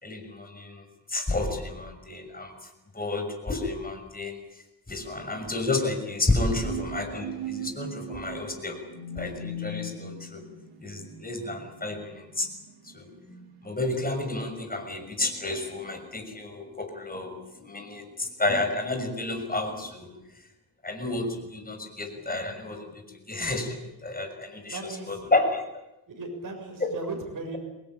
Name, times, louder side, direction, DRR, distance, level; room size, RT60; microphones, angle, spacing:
voice 1, 0.0-0.8 1.1-2.5 2.9-4.4 4.9-8.8 9.2-10.4 10.8-12.5 12.9-13.1 13.6-20.1 20.8-25.6 26.8-26.9, left 2 dB, 20° left, 5 dB, 6.3 m, -31 dB
sound 1, 5.0-14.2, right 2 dB, 85° right, 5.9 m, -40 dB
voice 2, 24.7-25.3 26.1-27.6, right 3 dB, 55° right, 2 dB, 7.1 m, -37 dB
25.5 x 20.0 x 9.0 m, 0.93 s
wide cardioid pair, 100°, 39 cm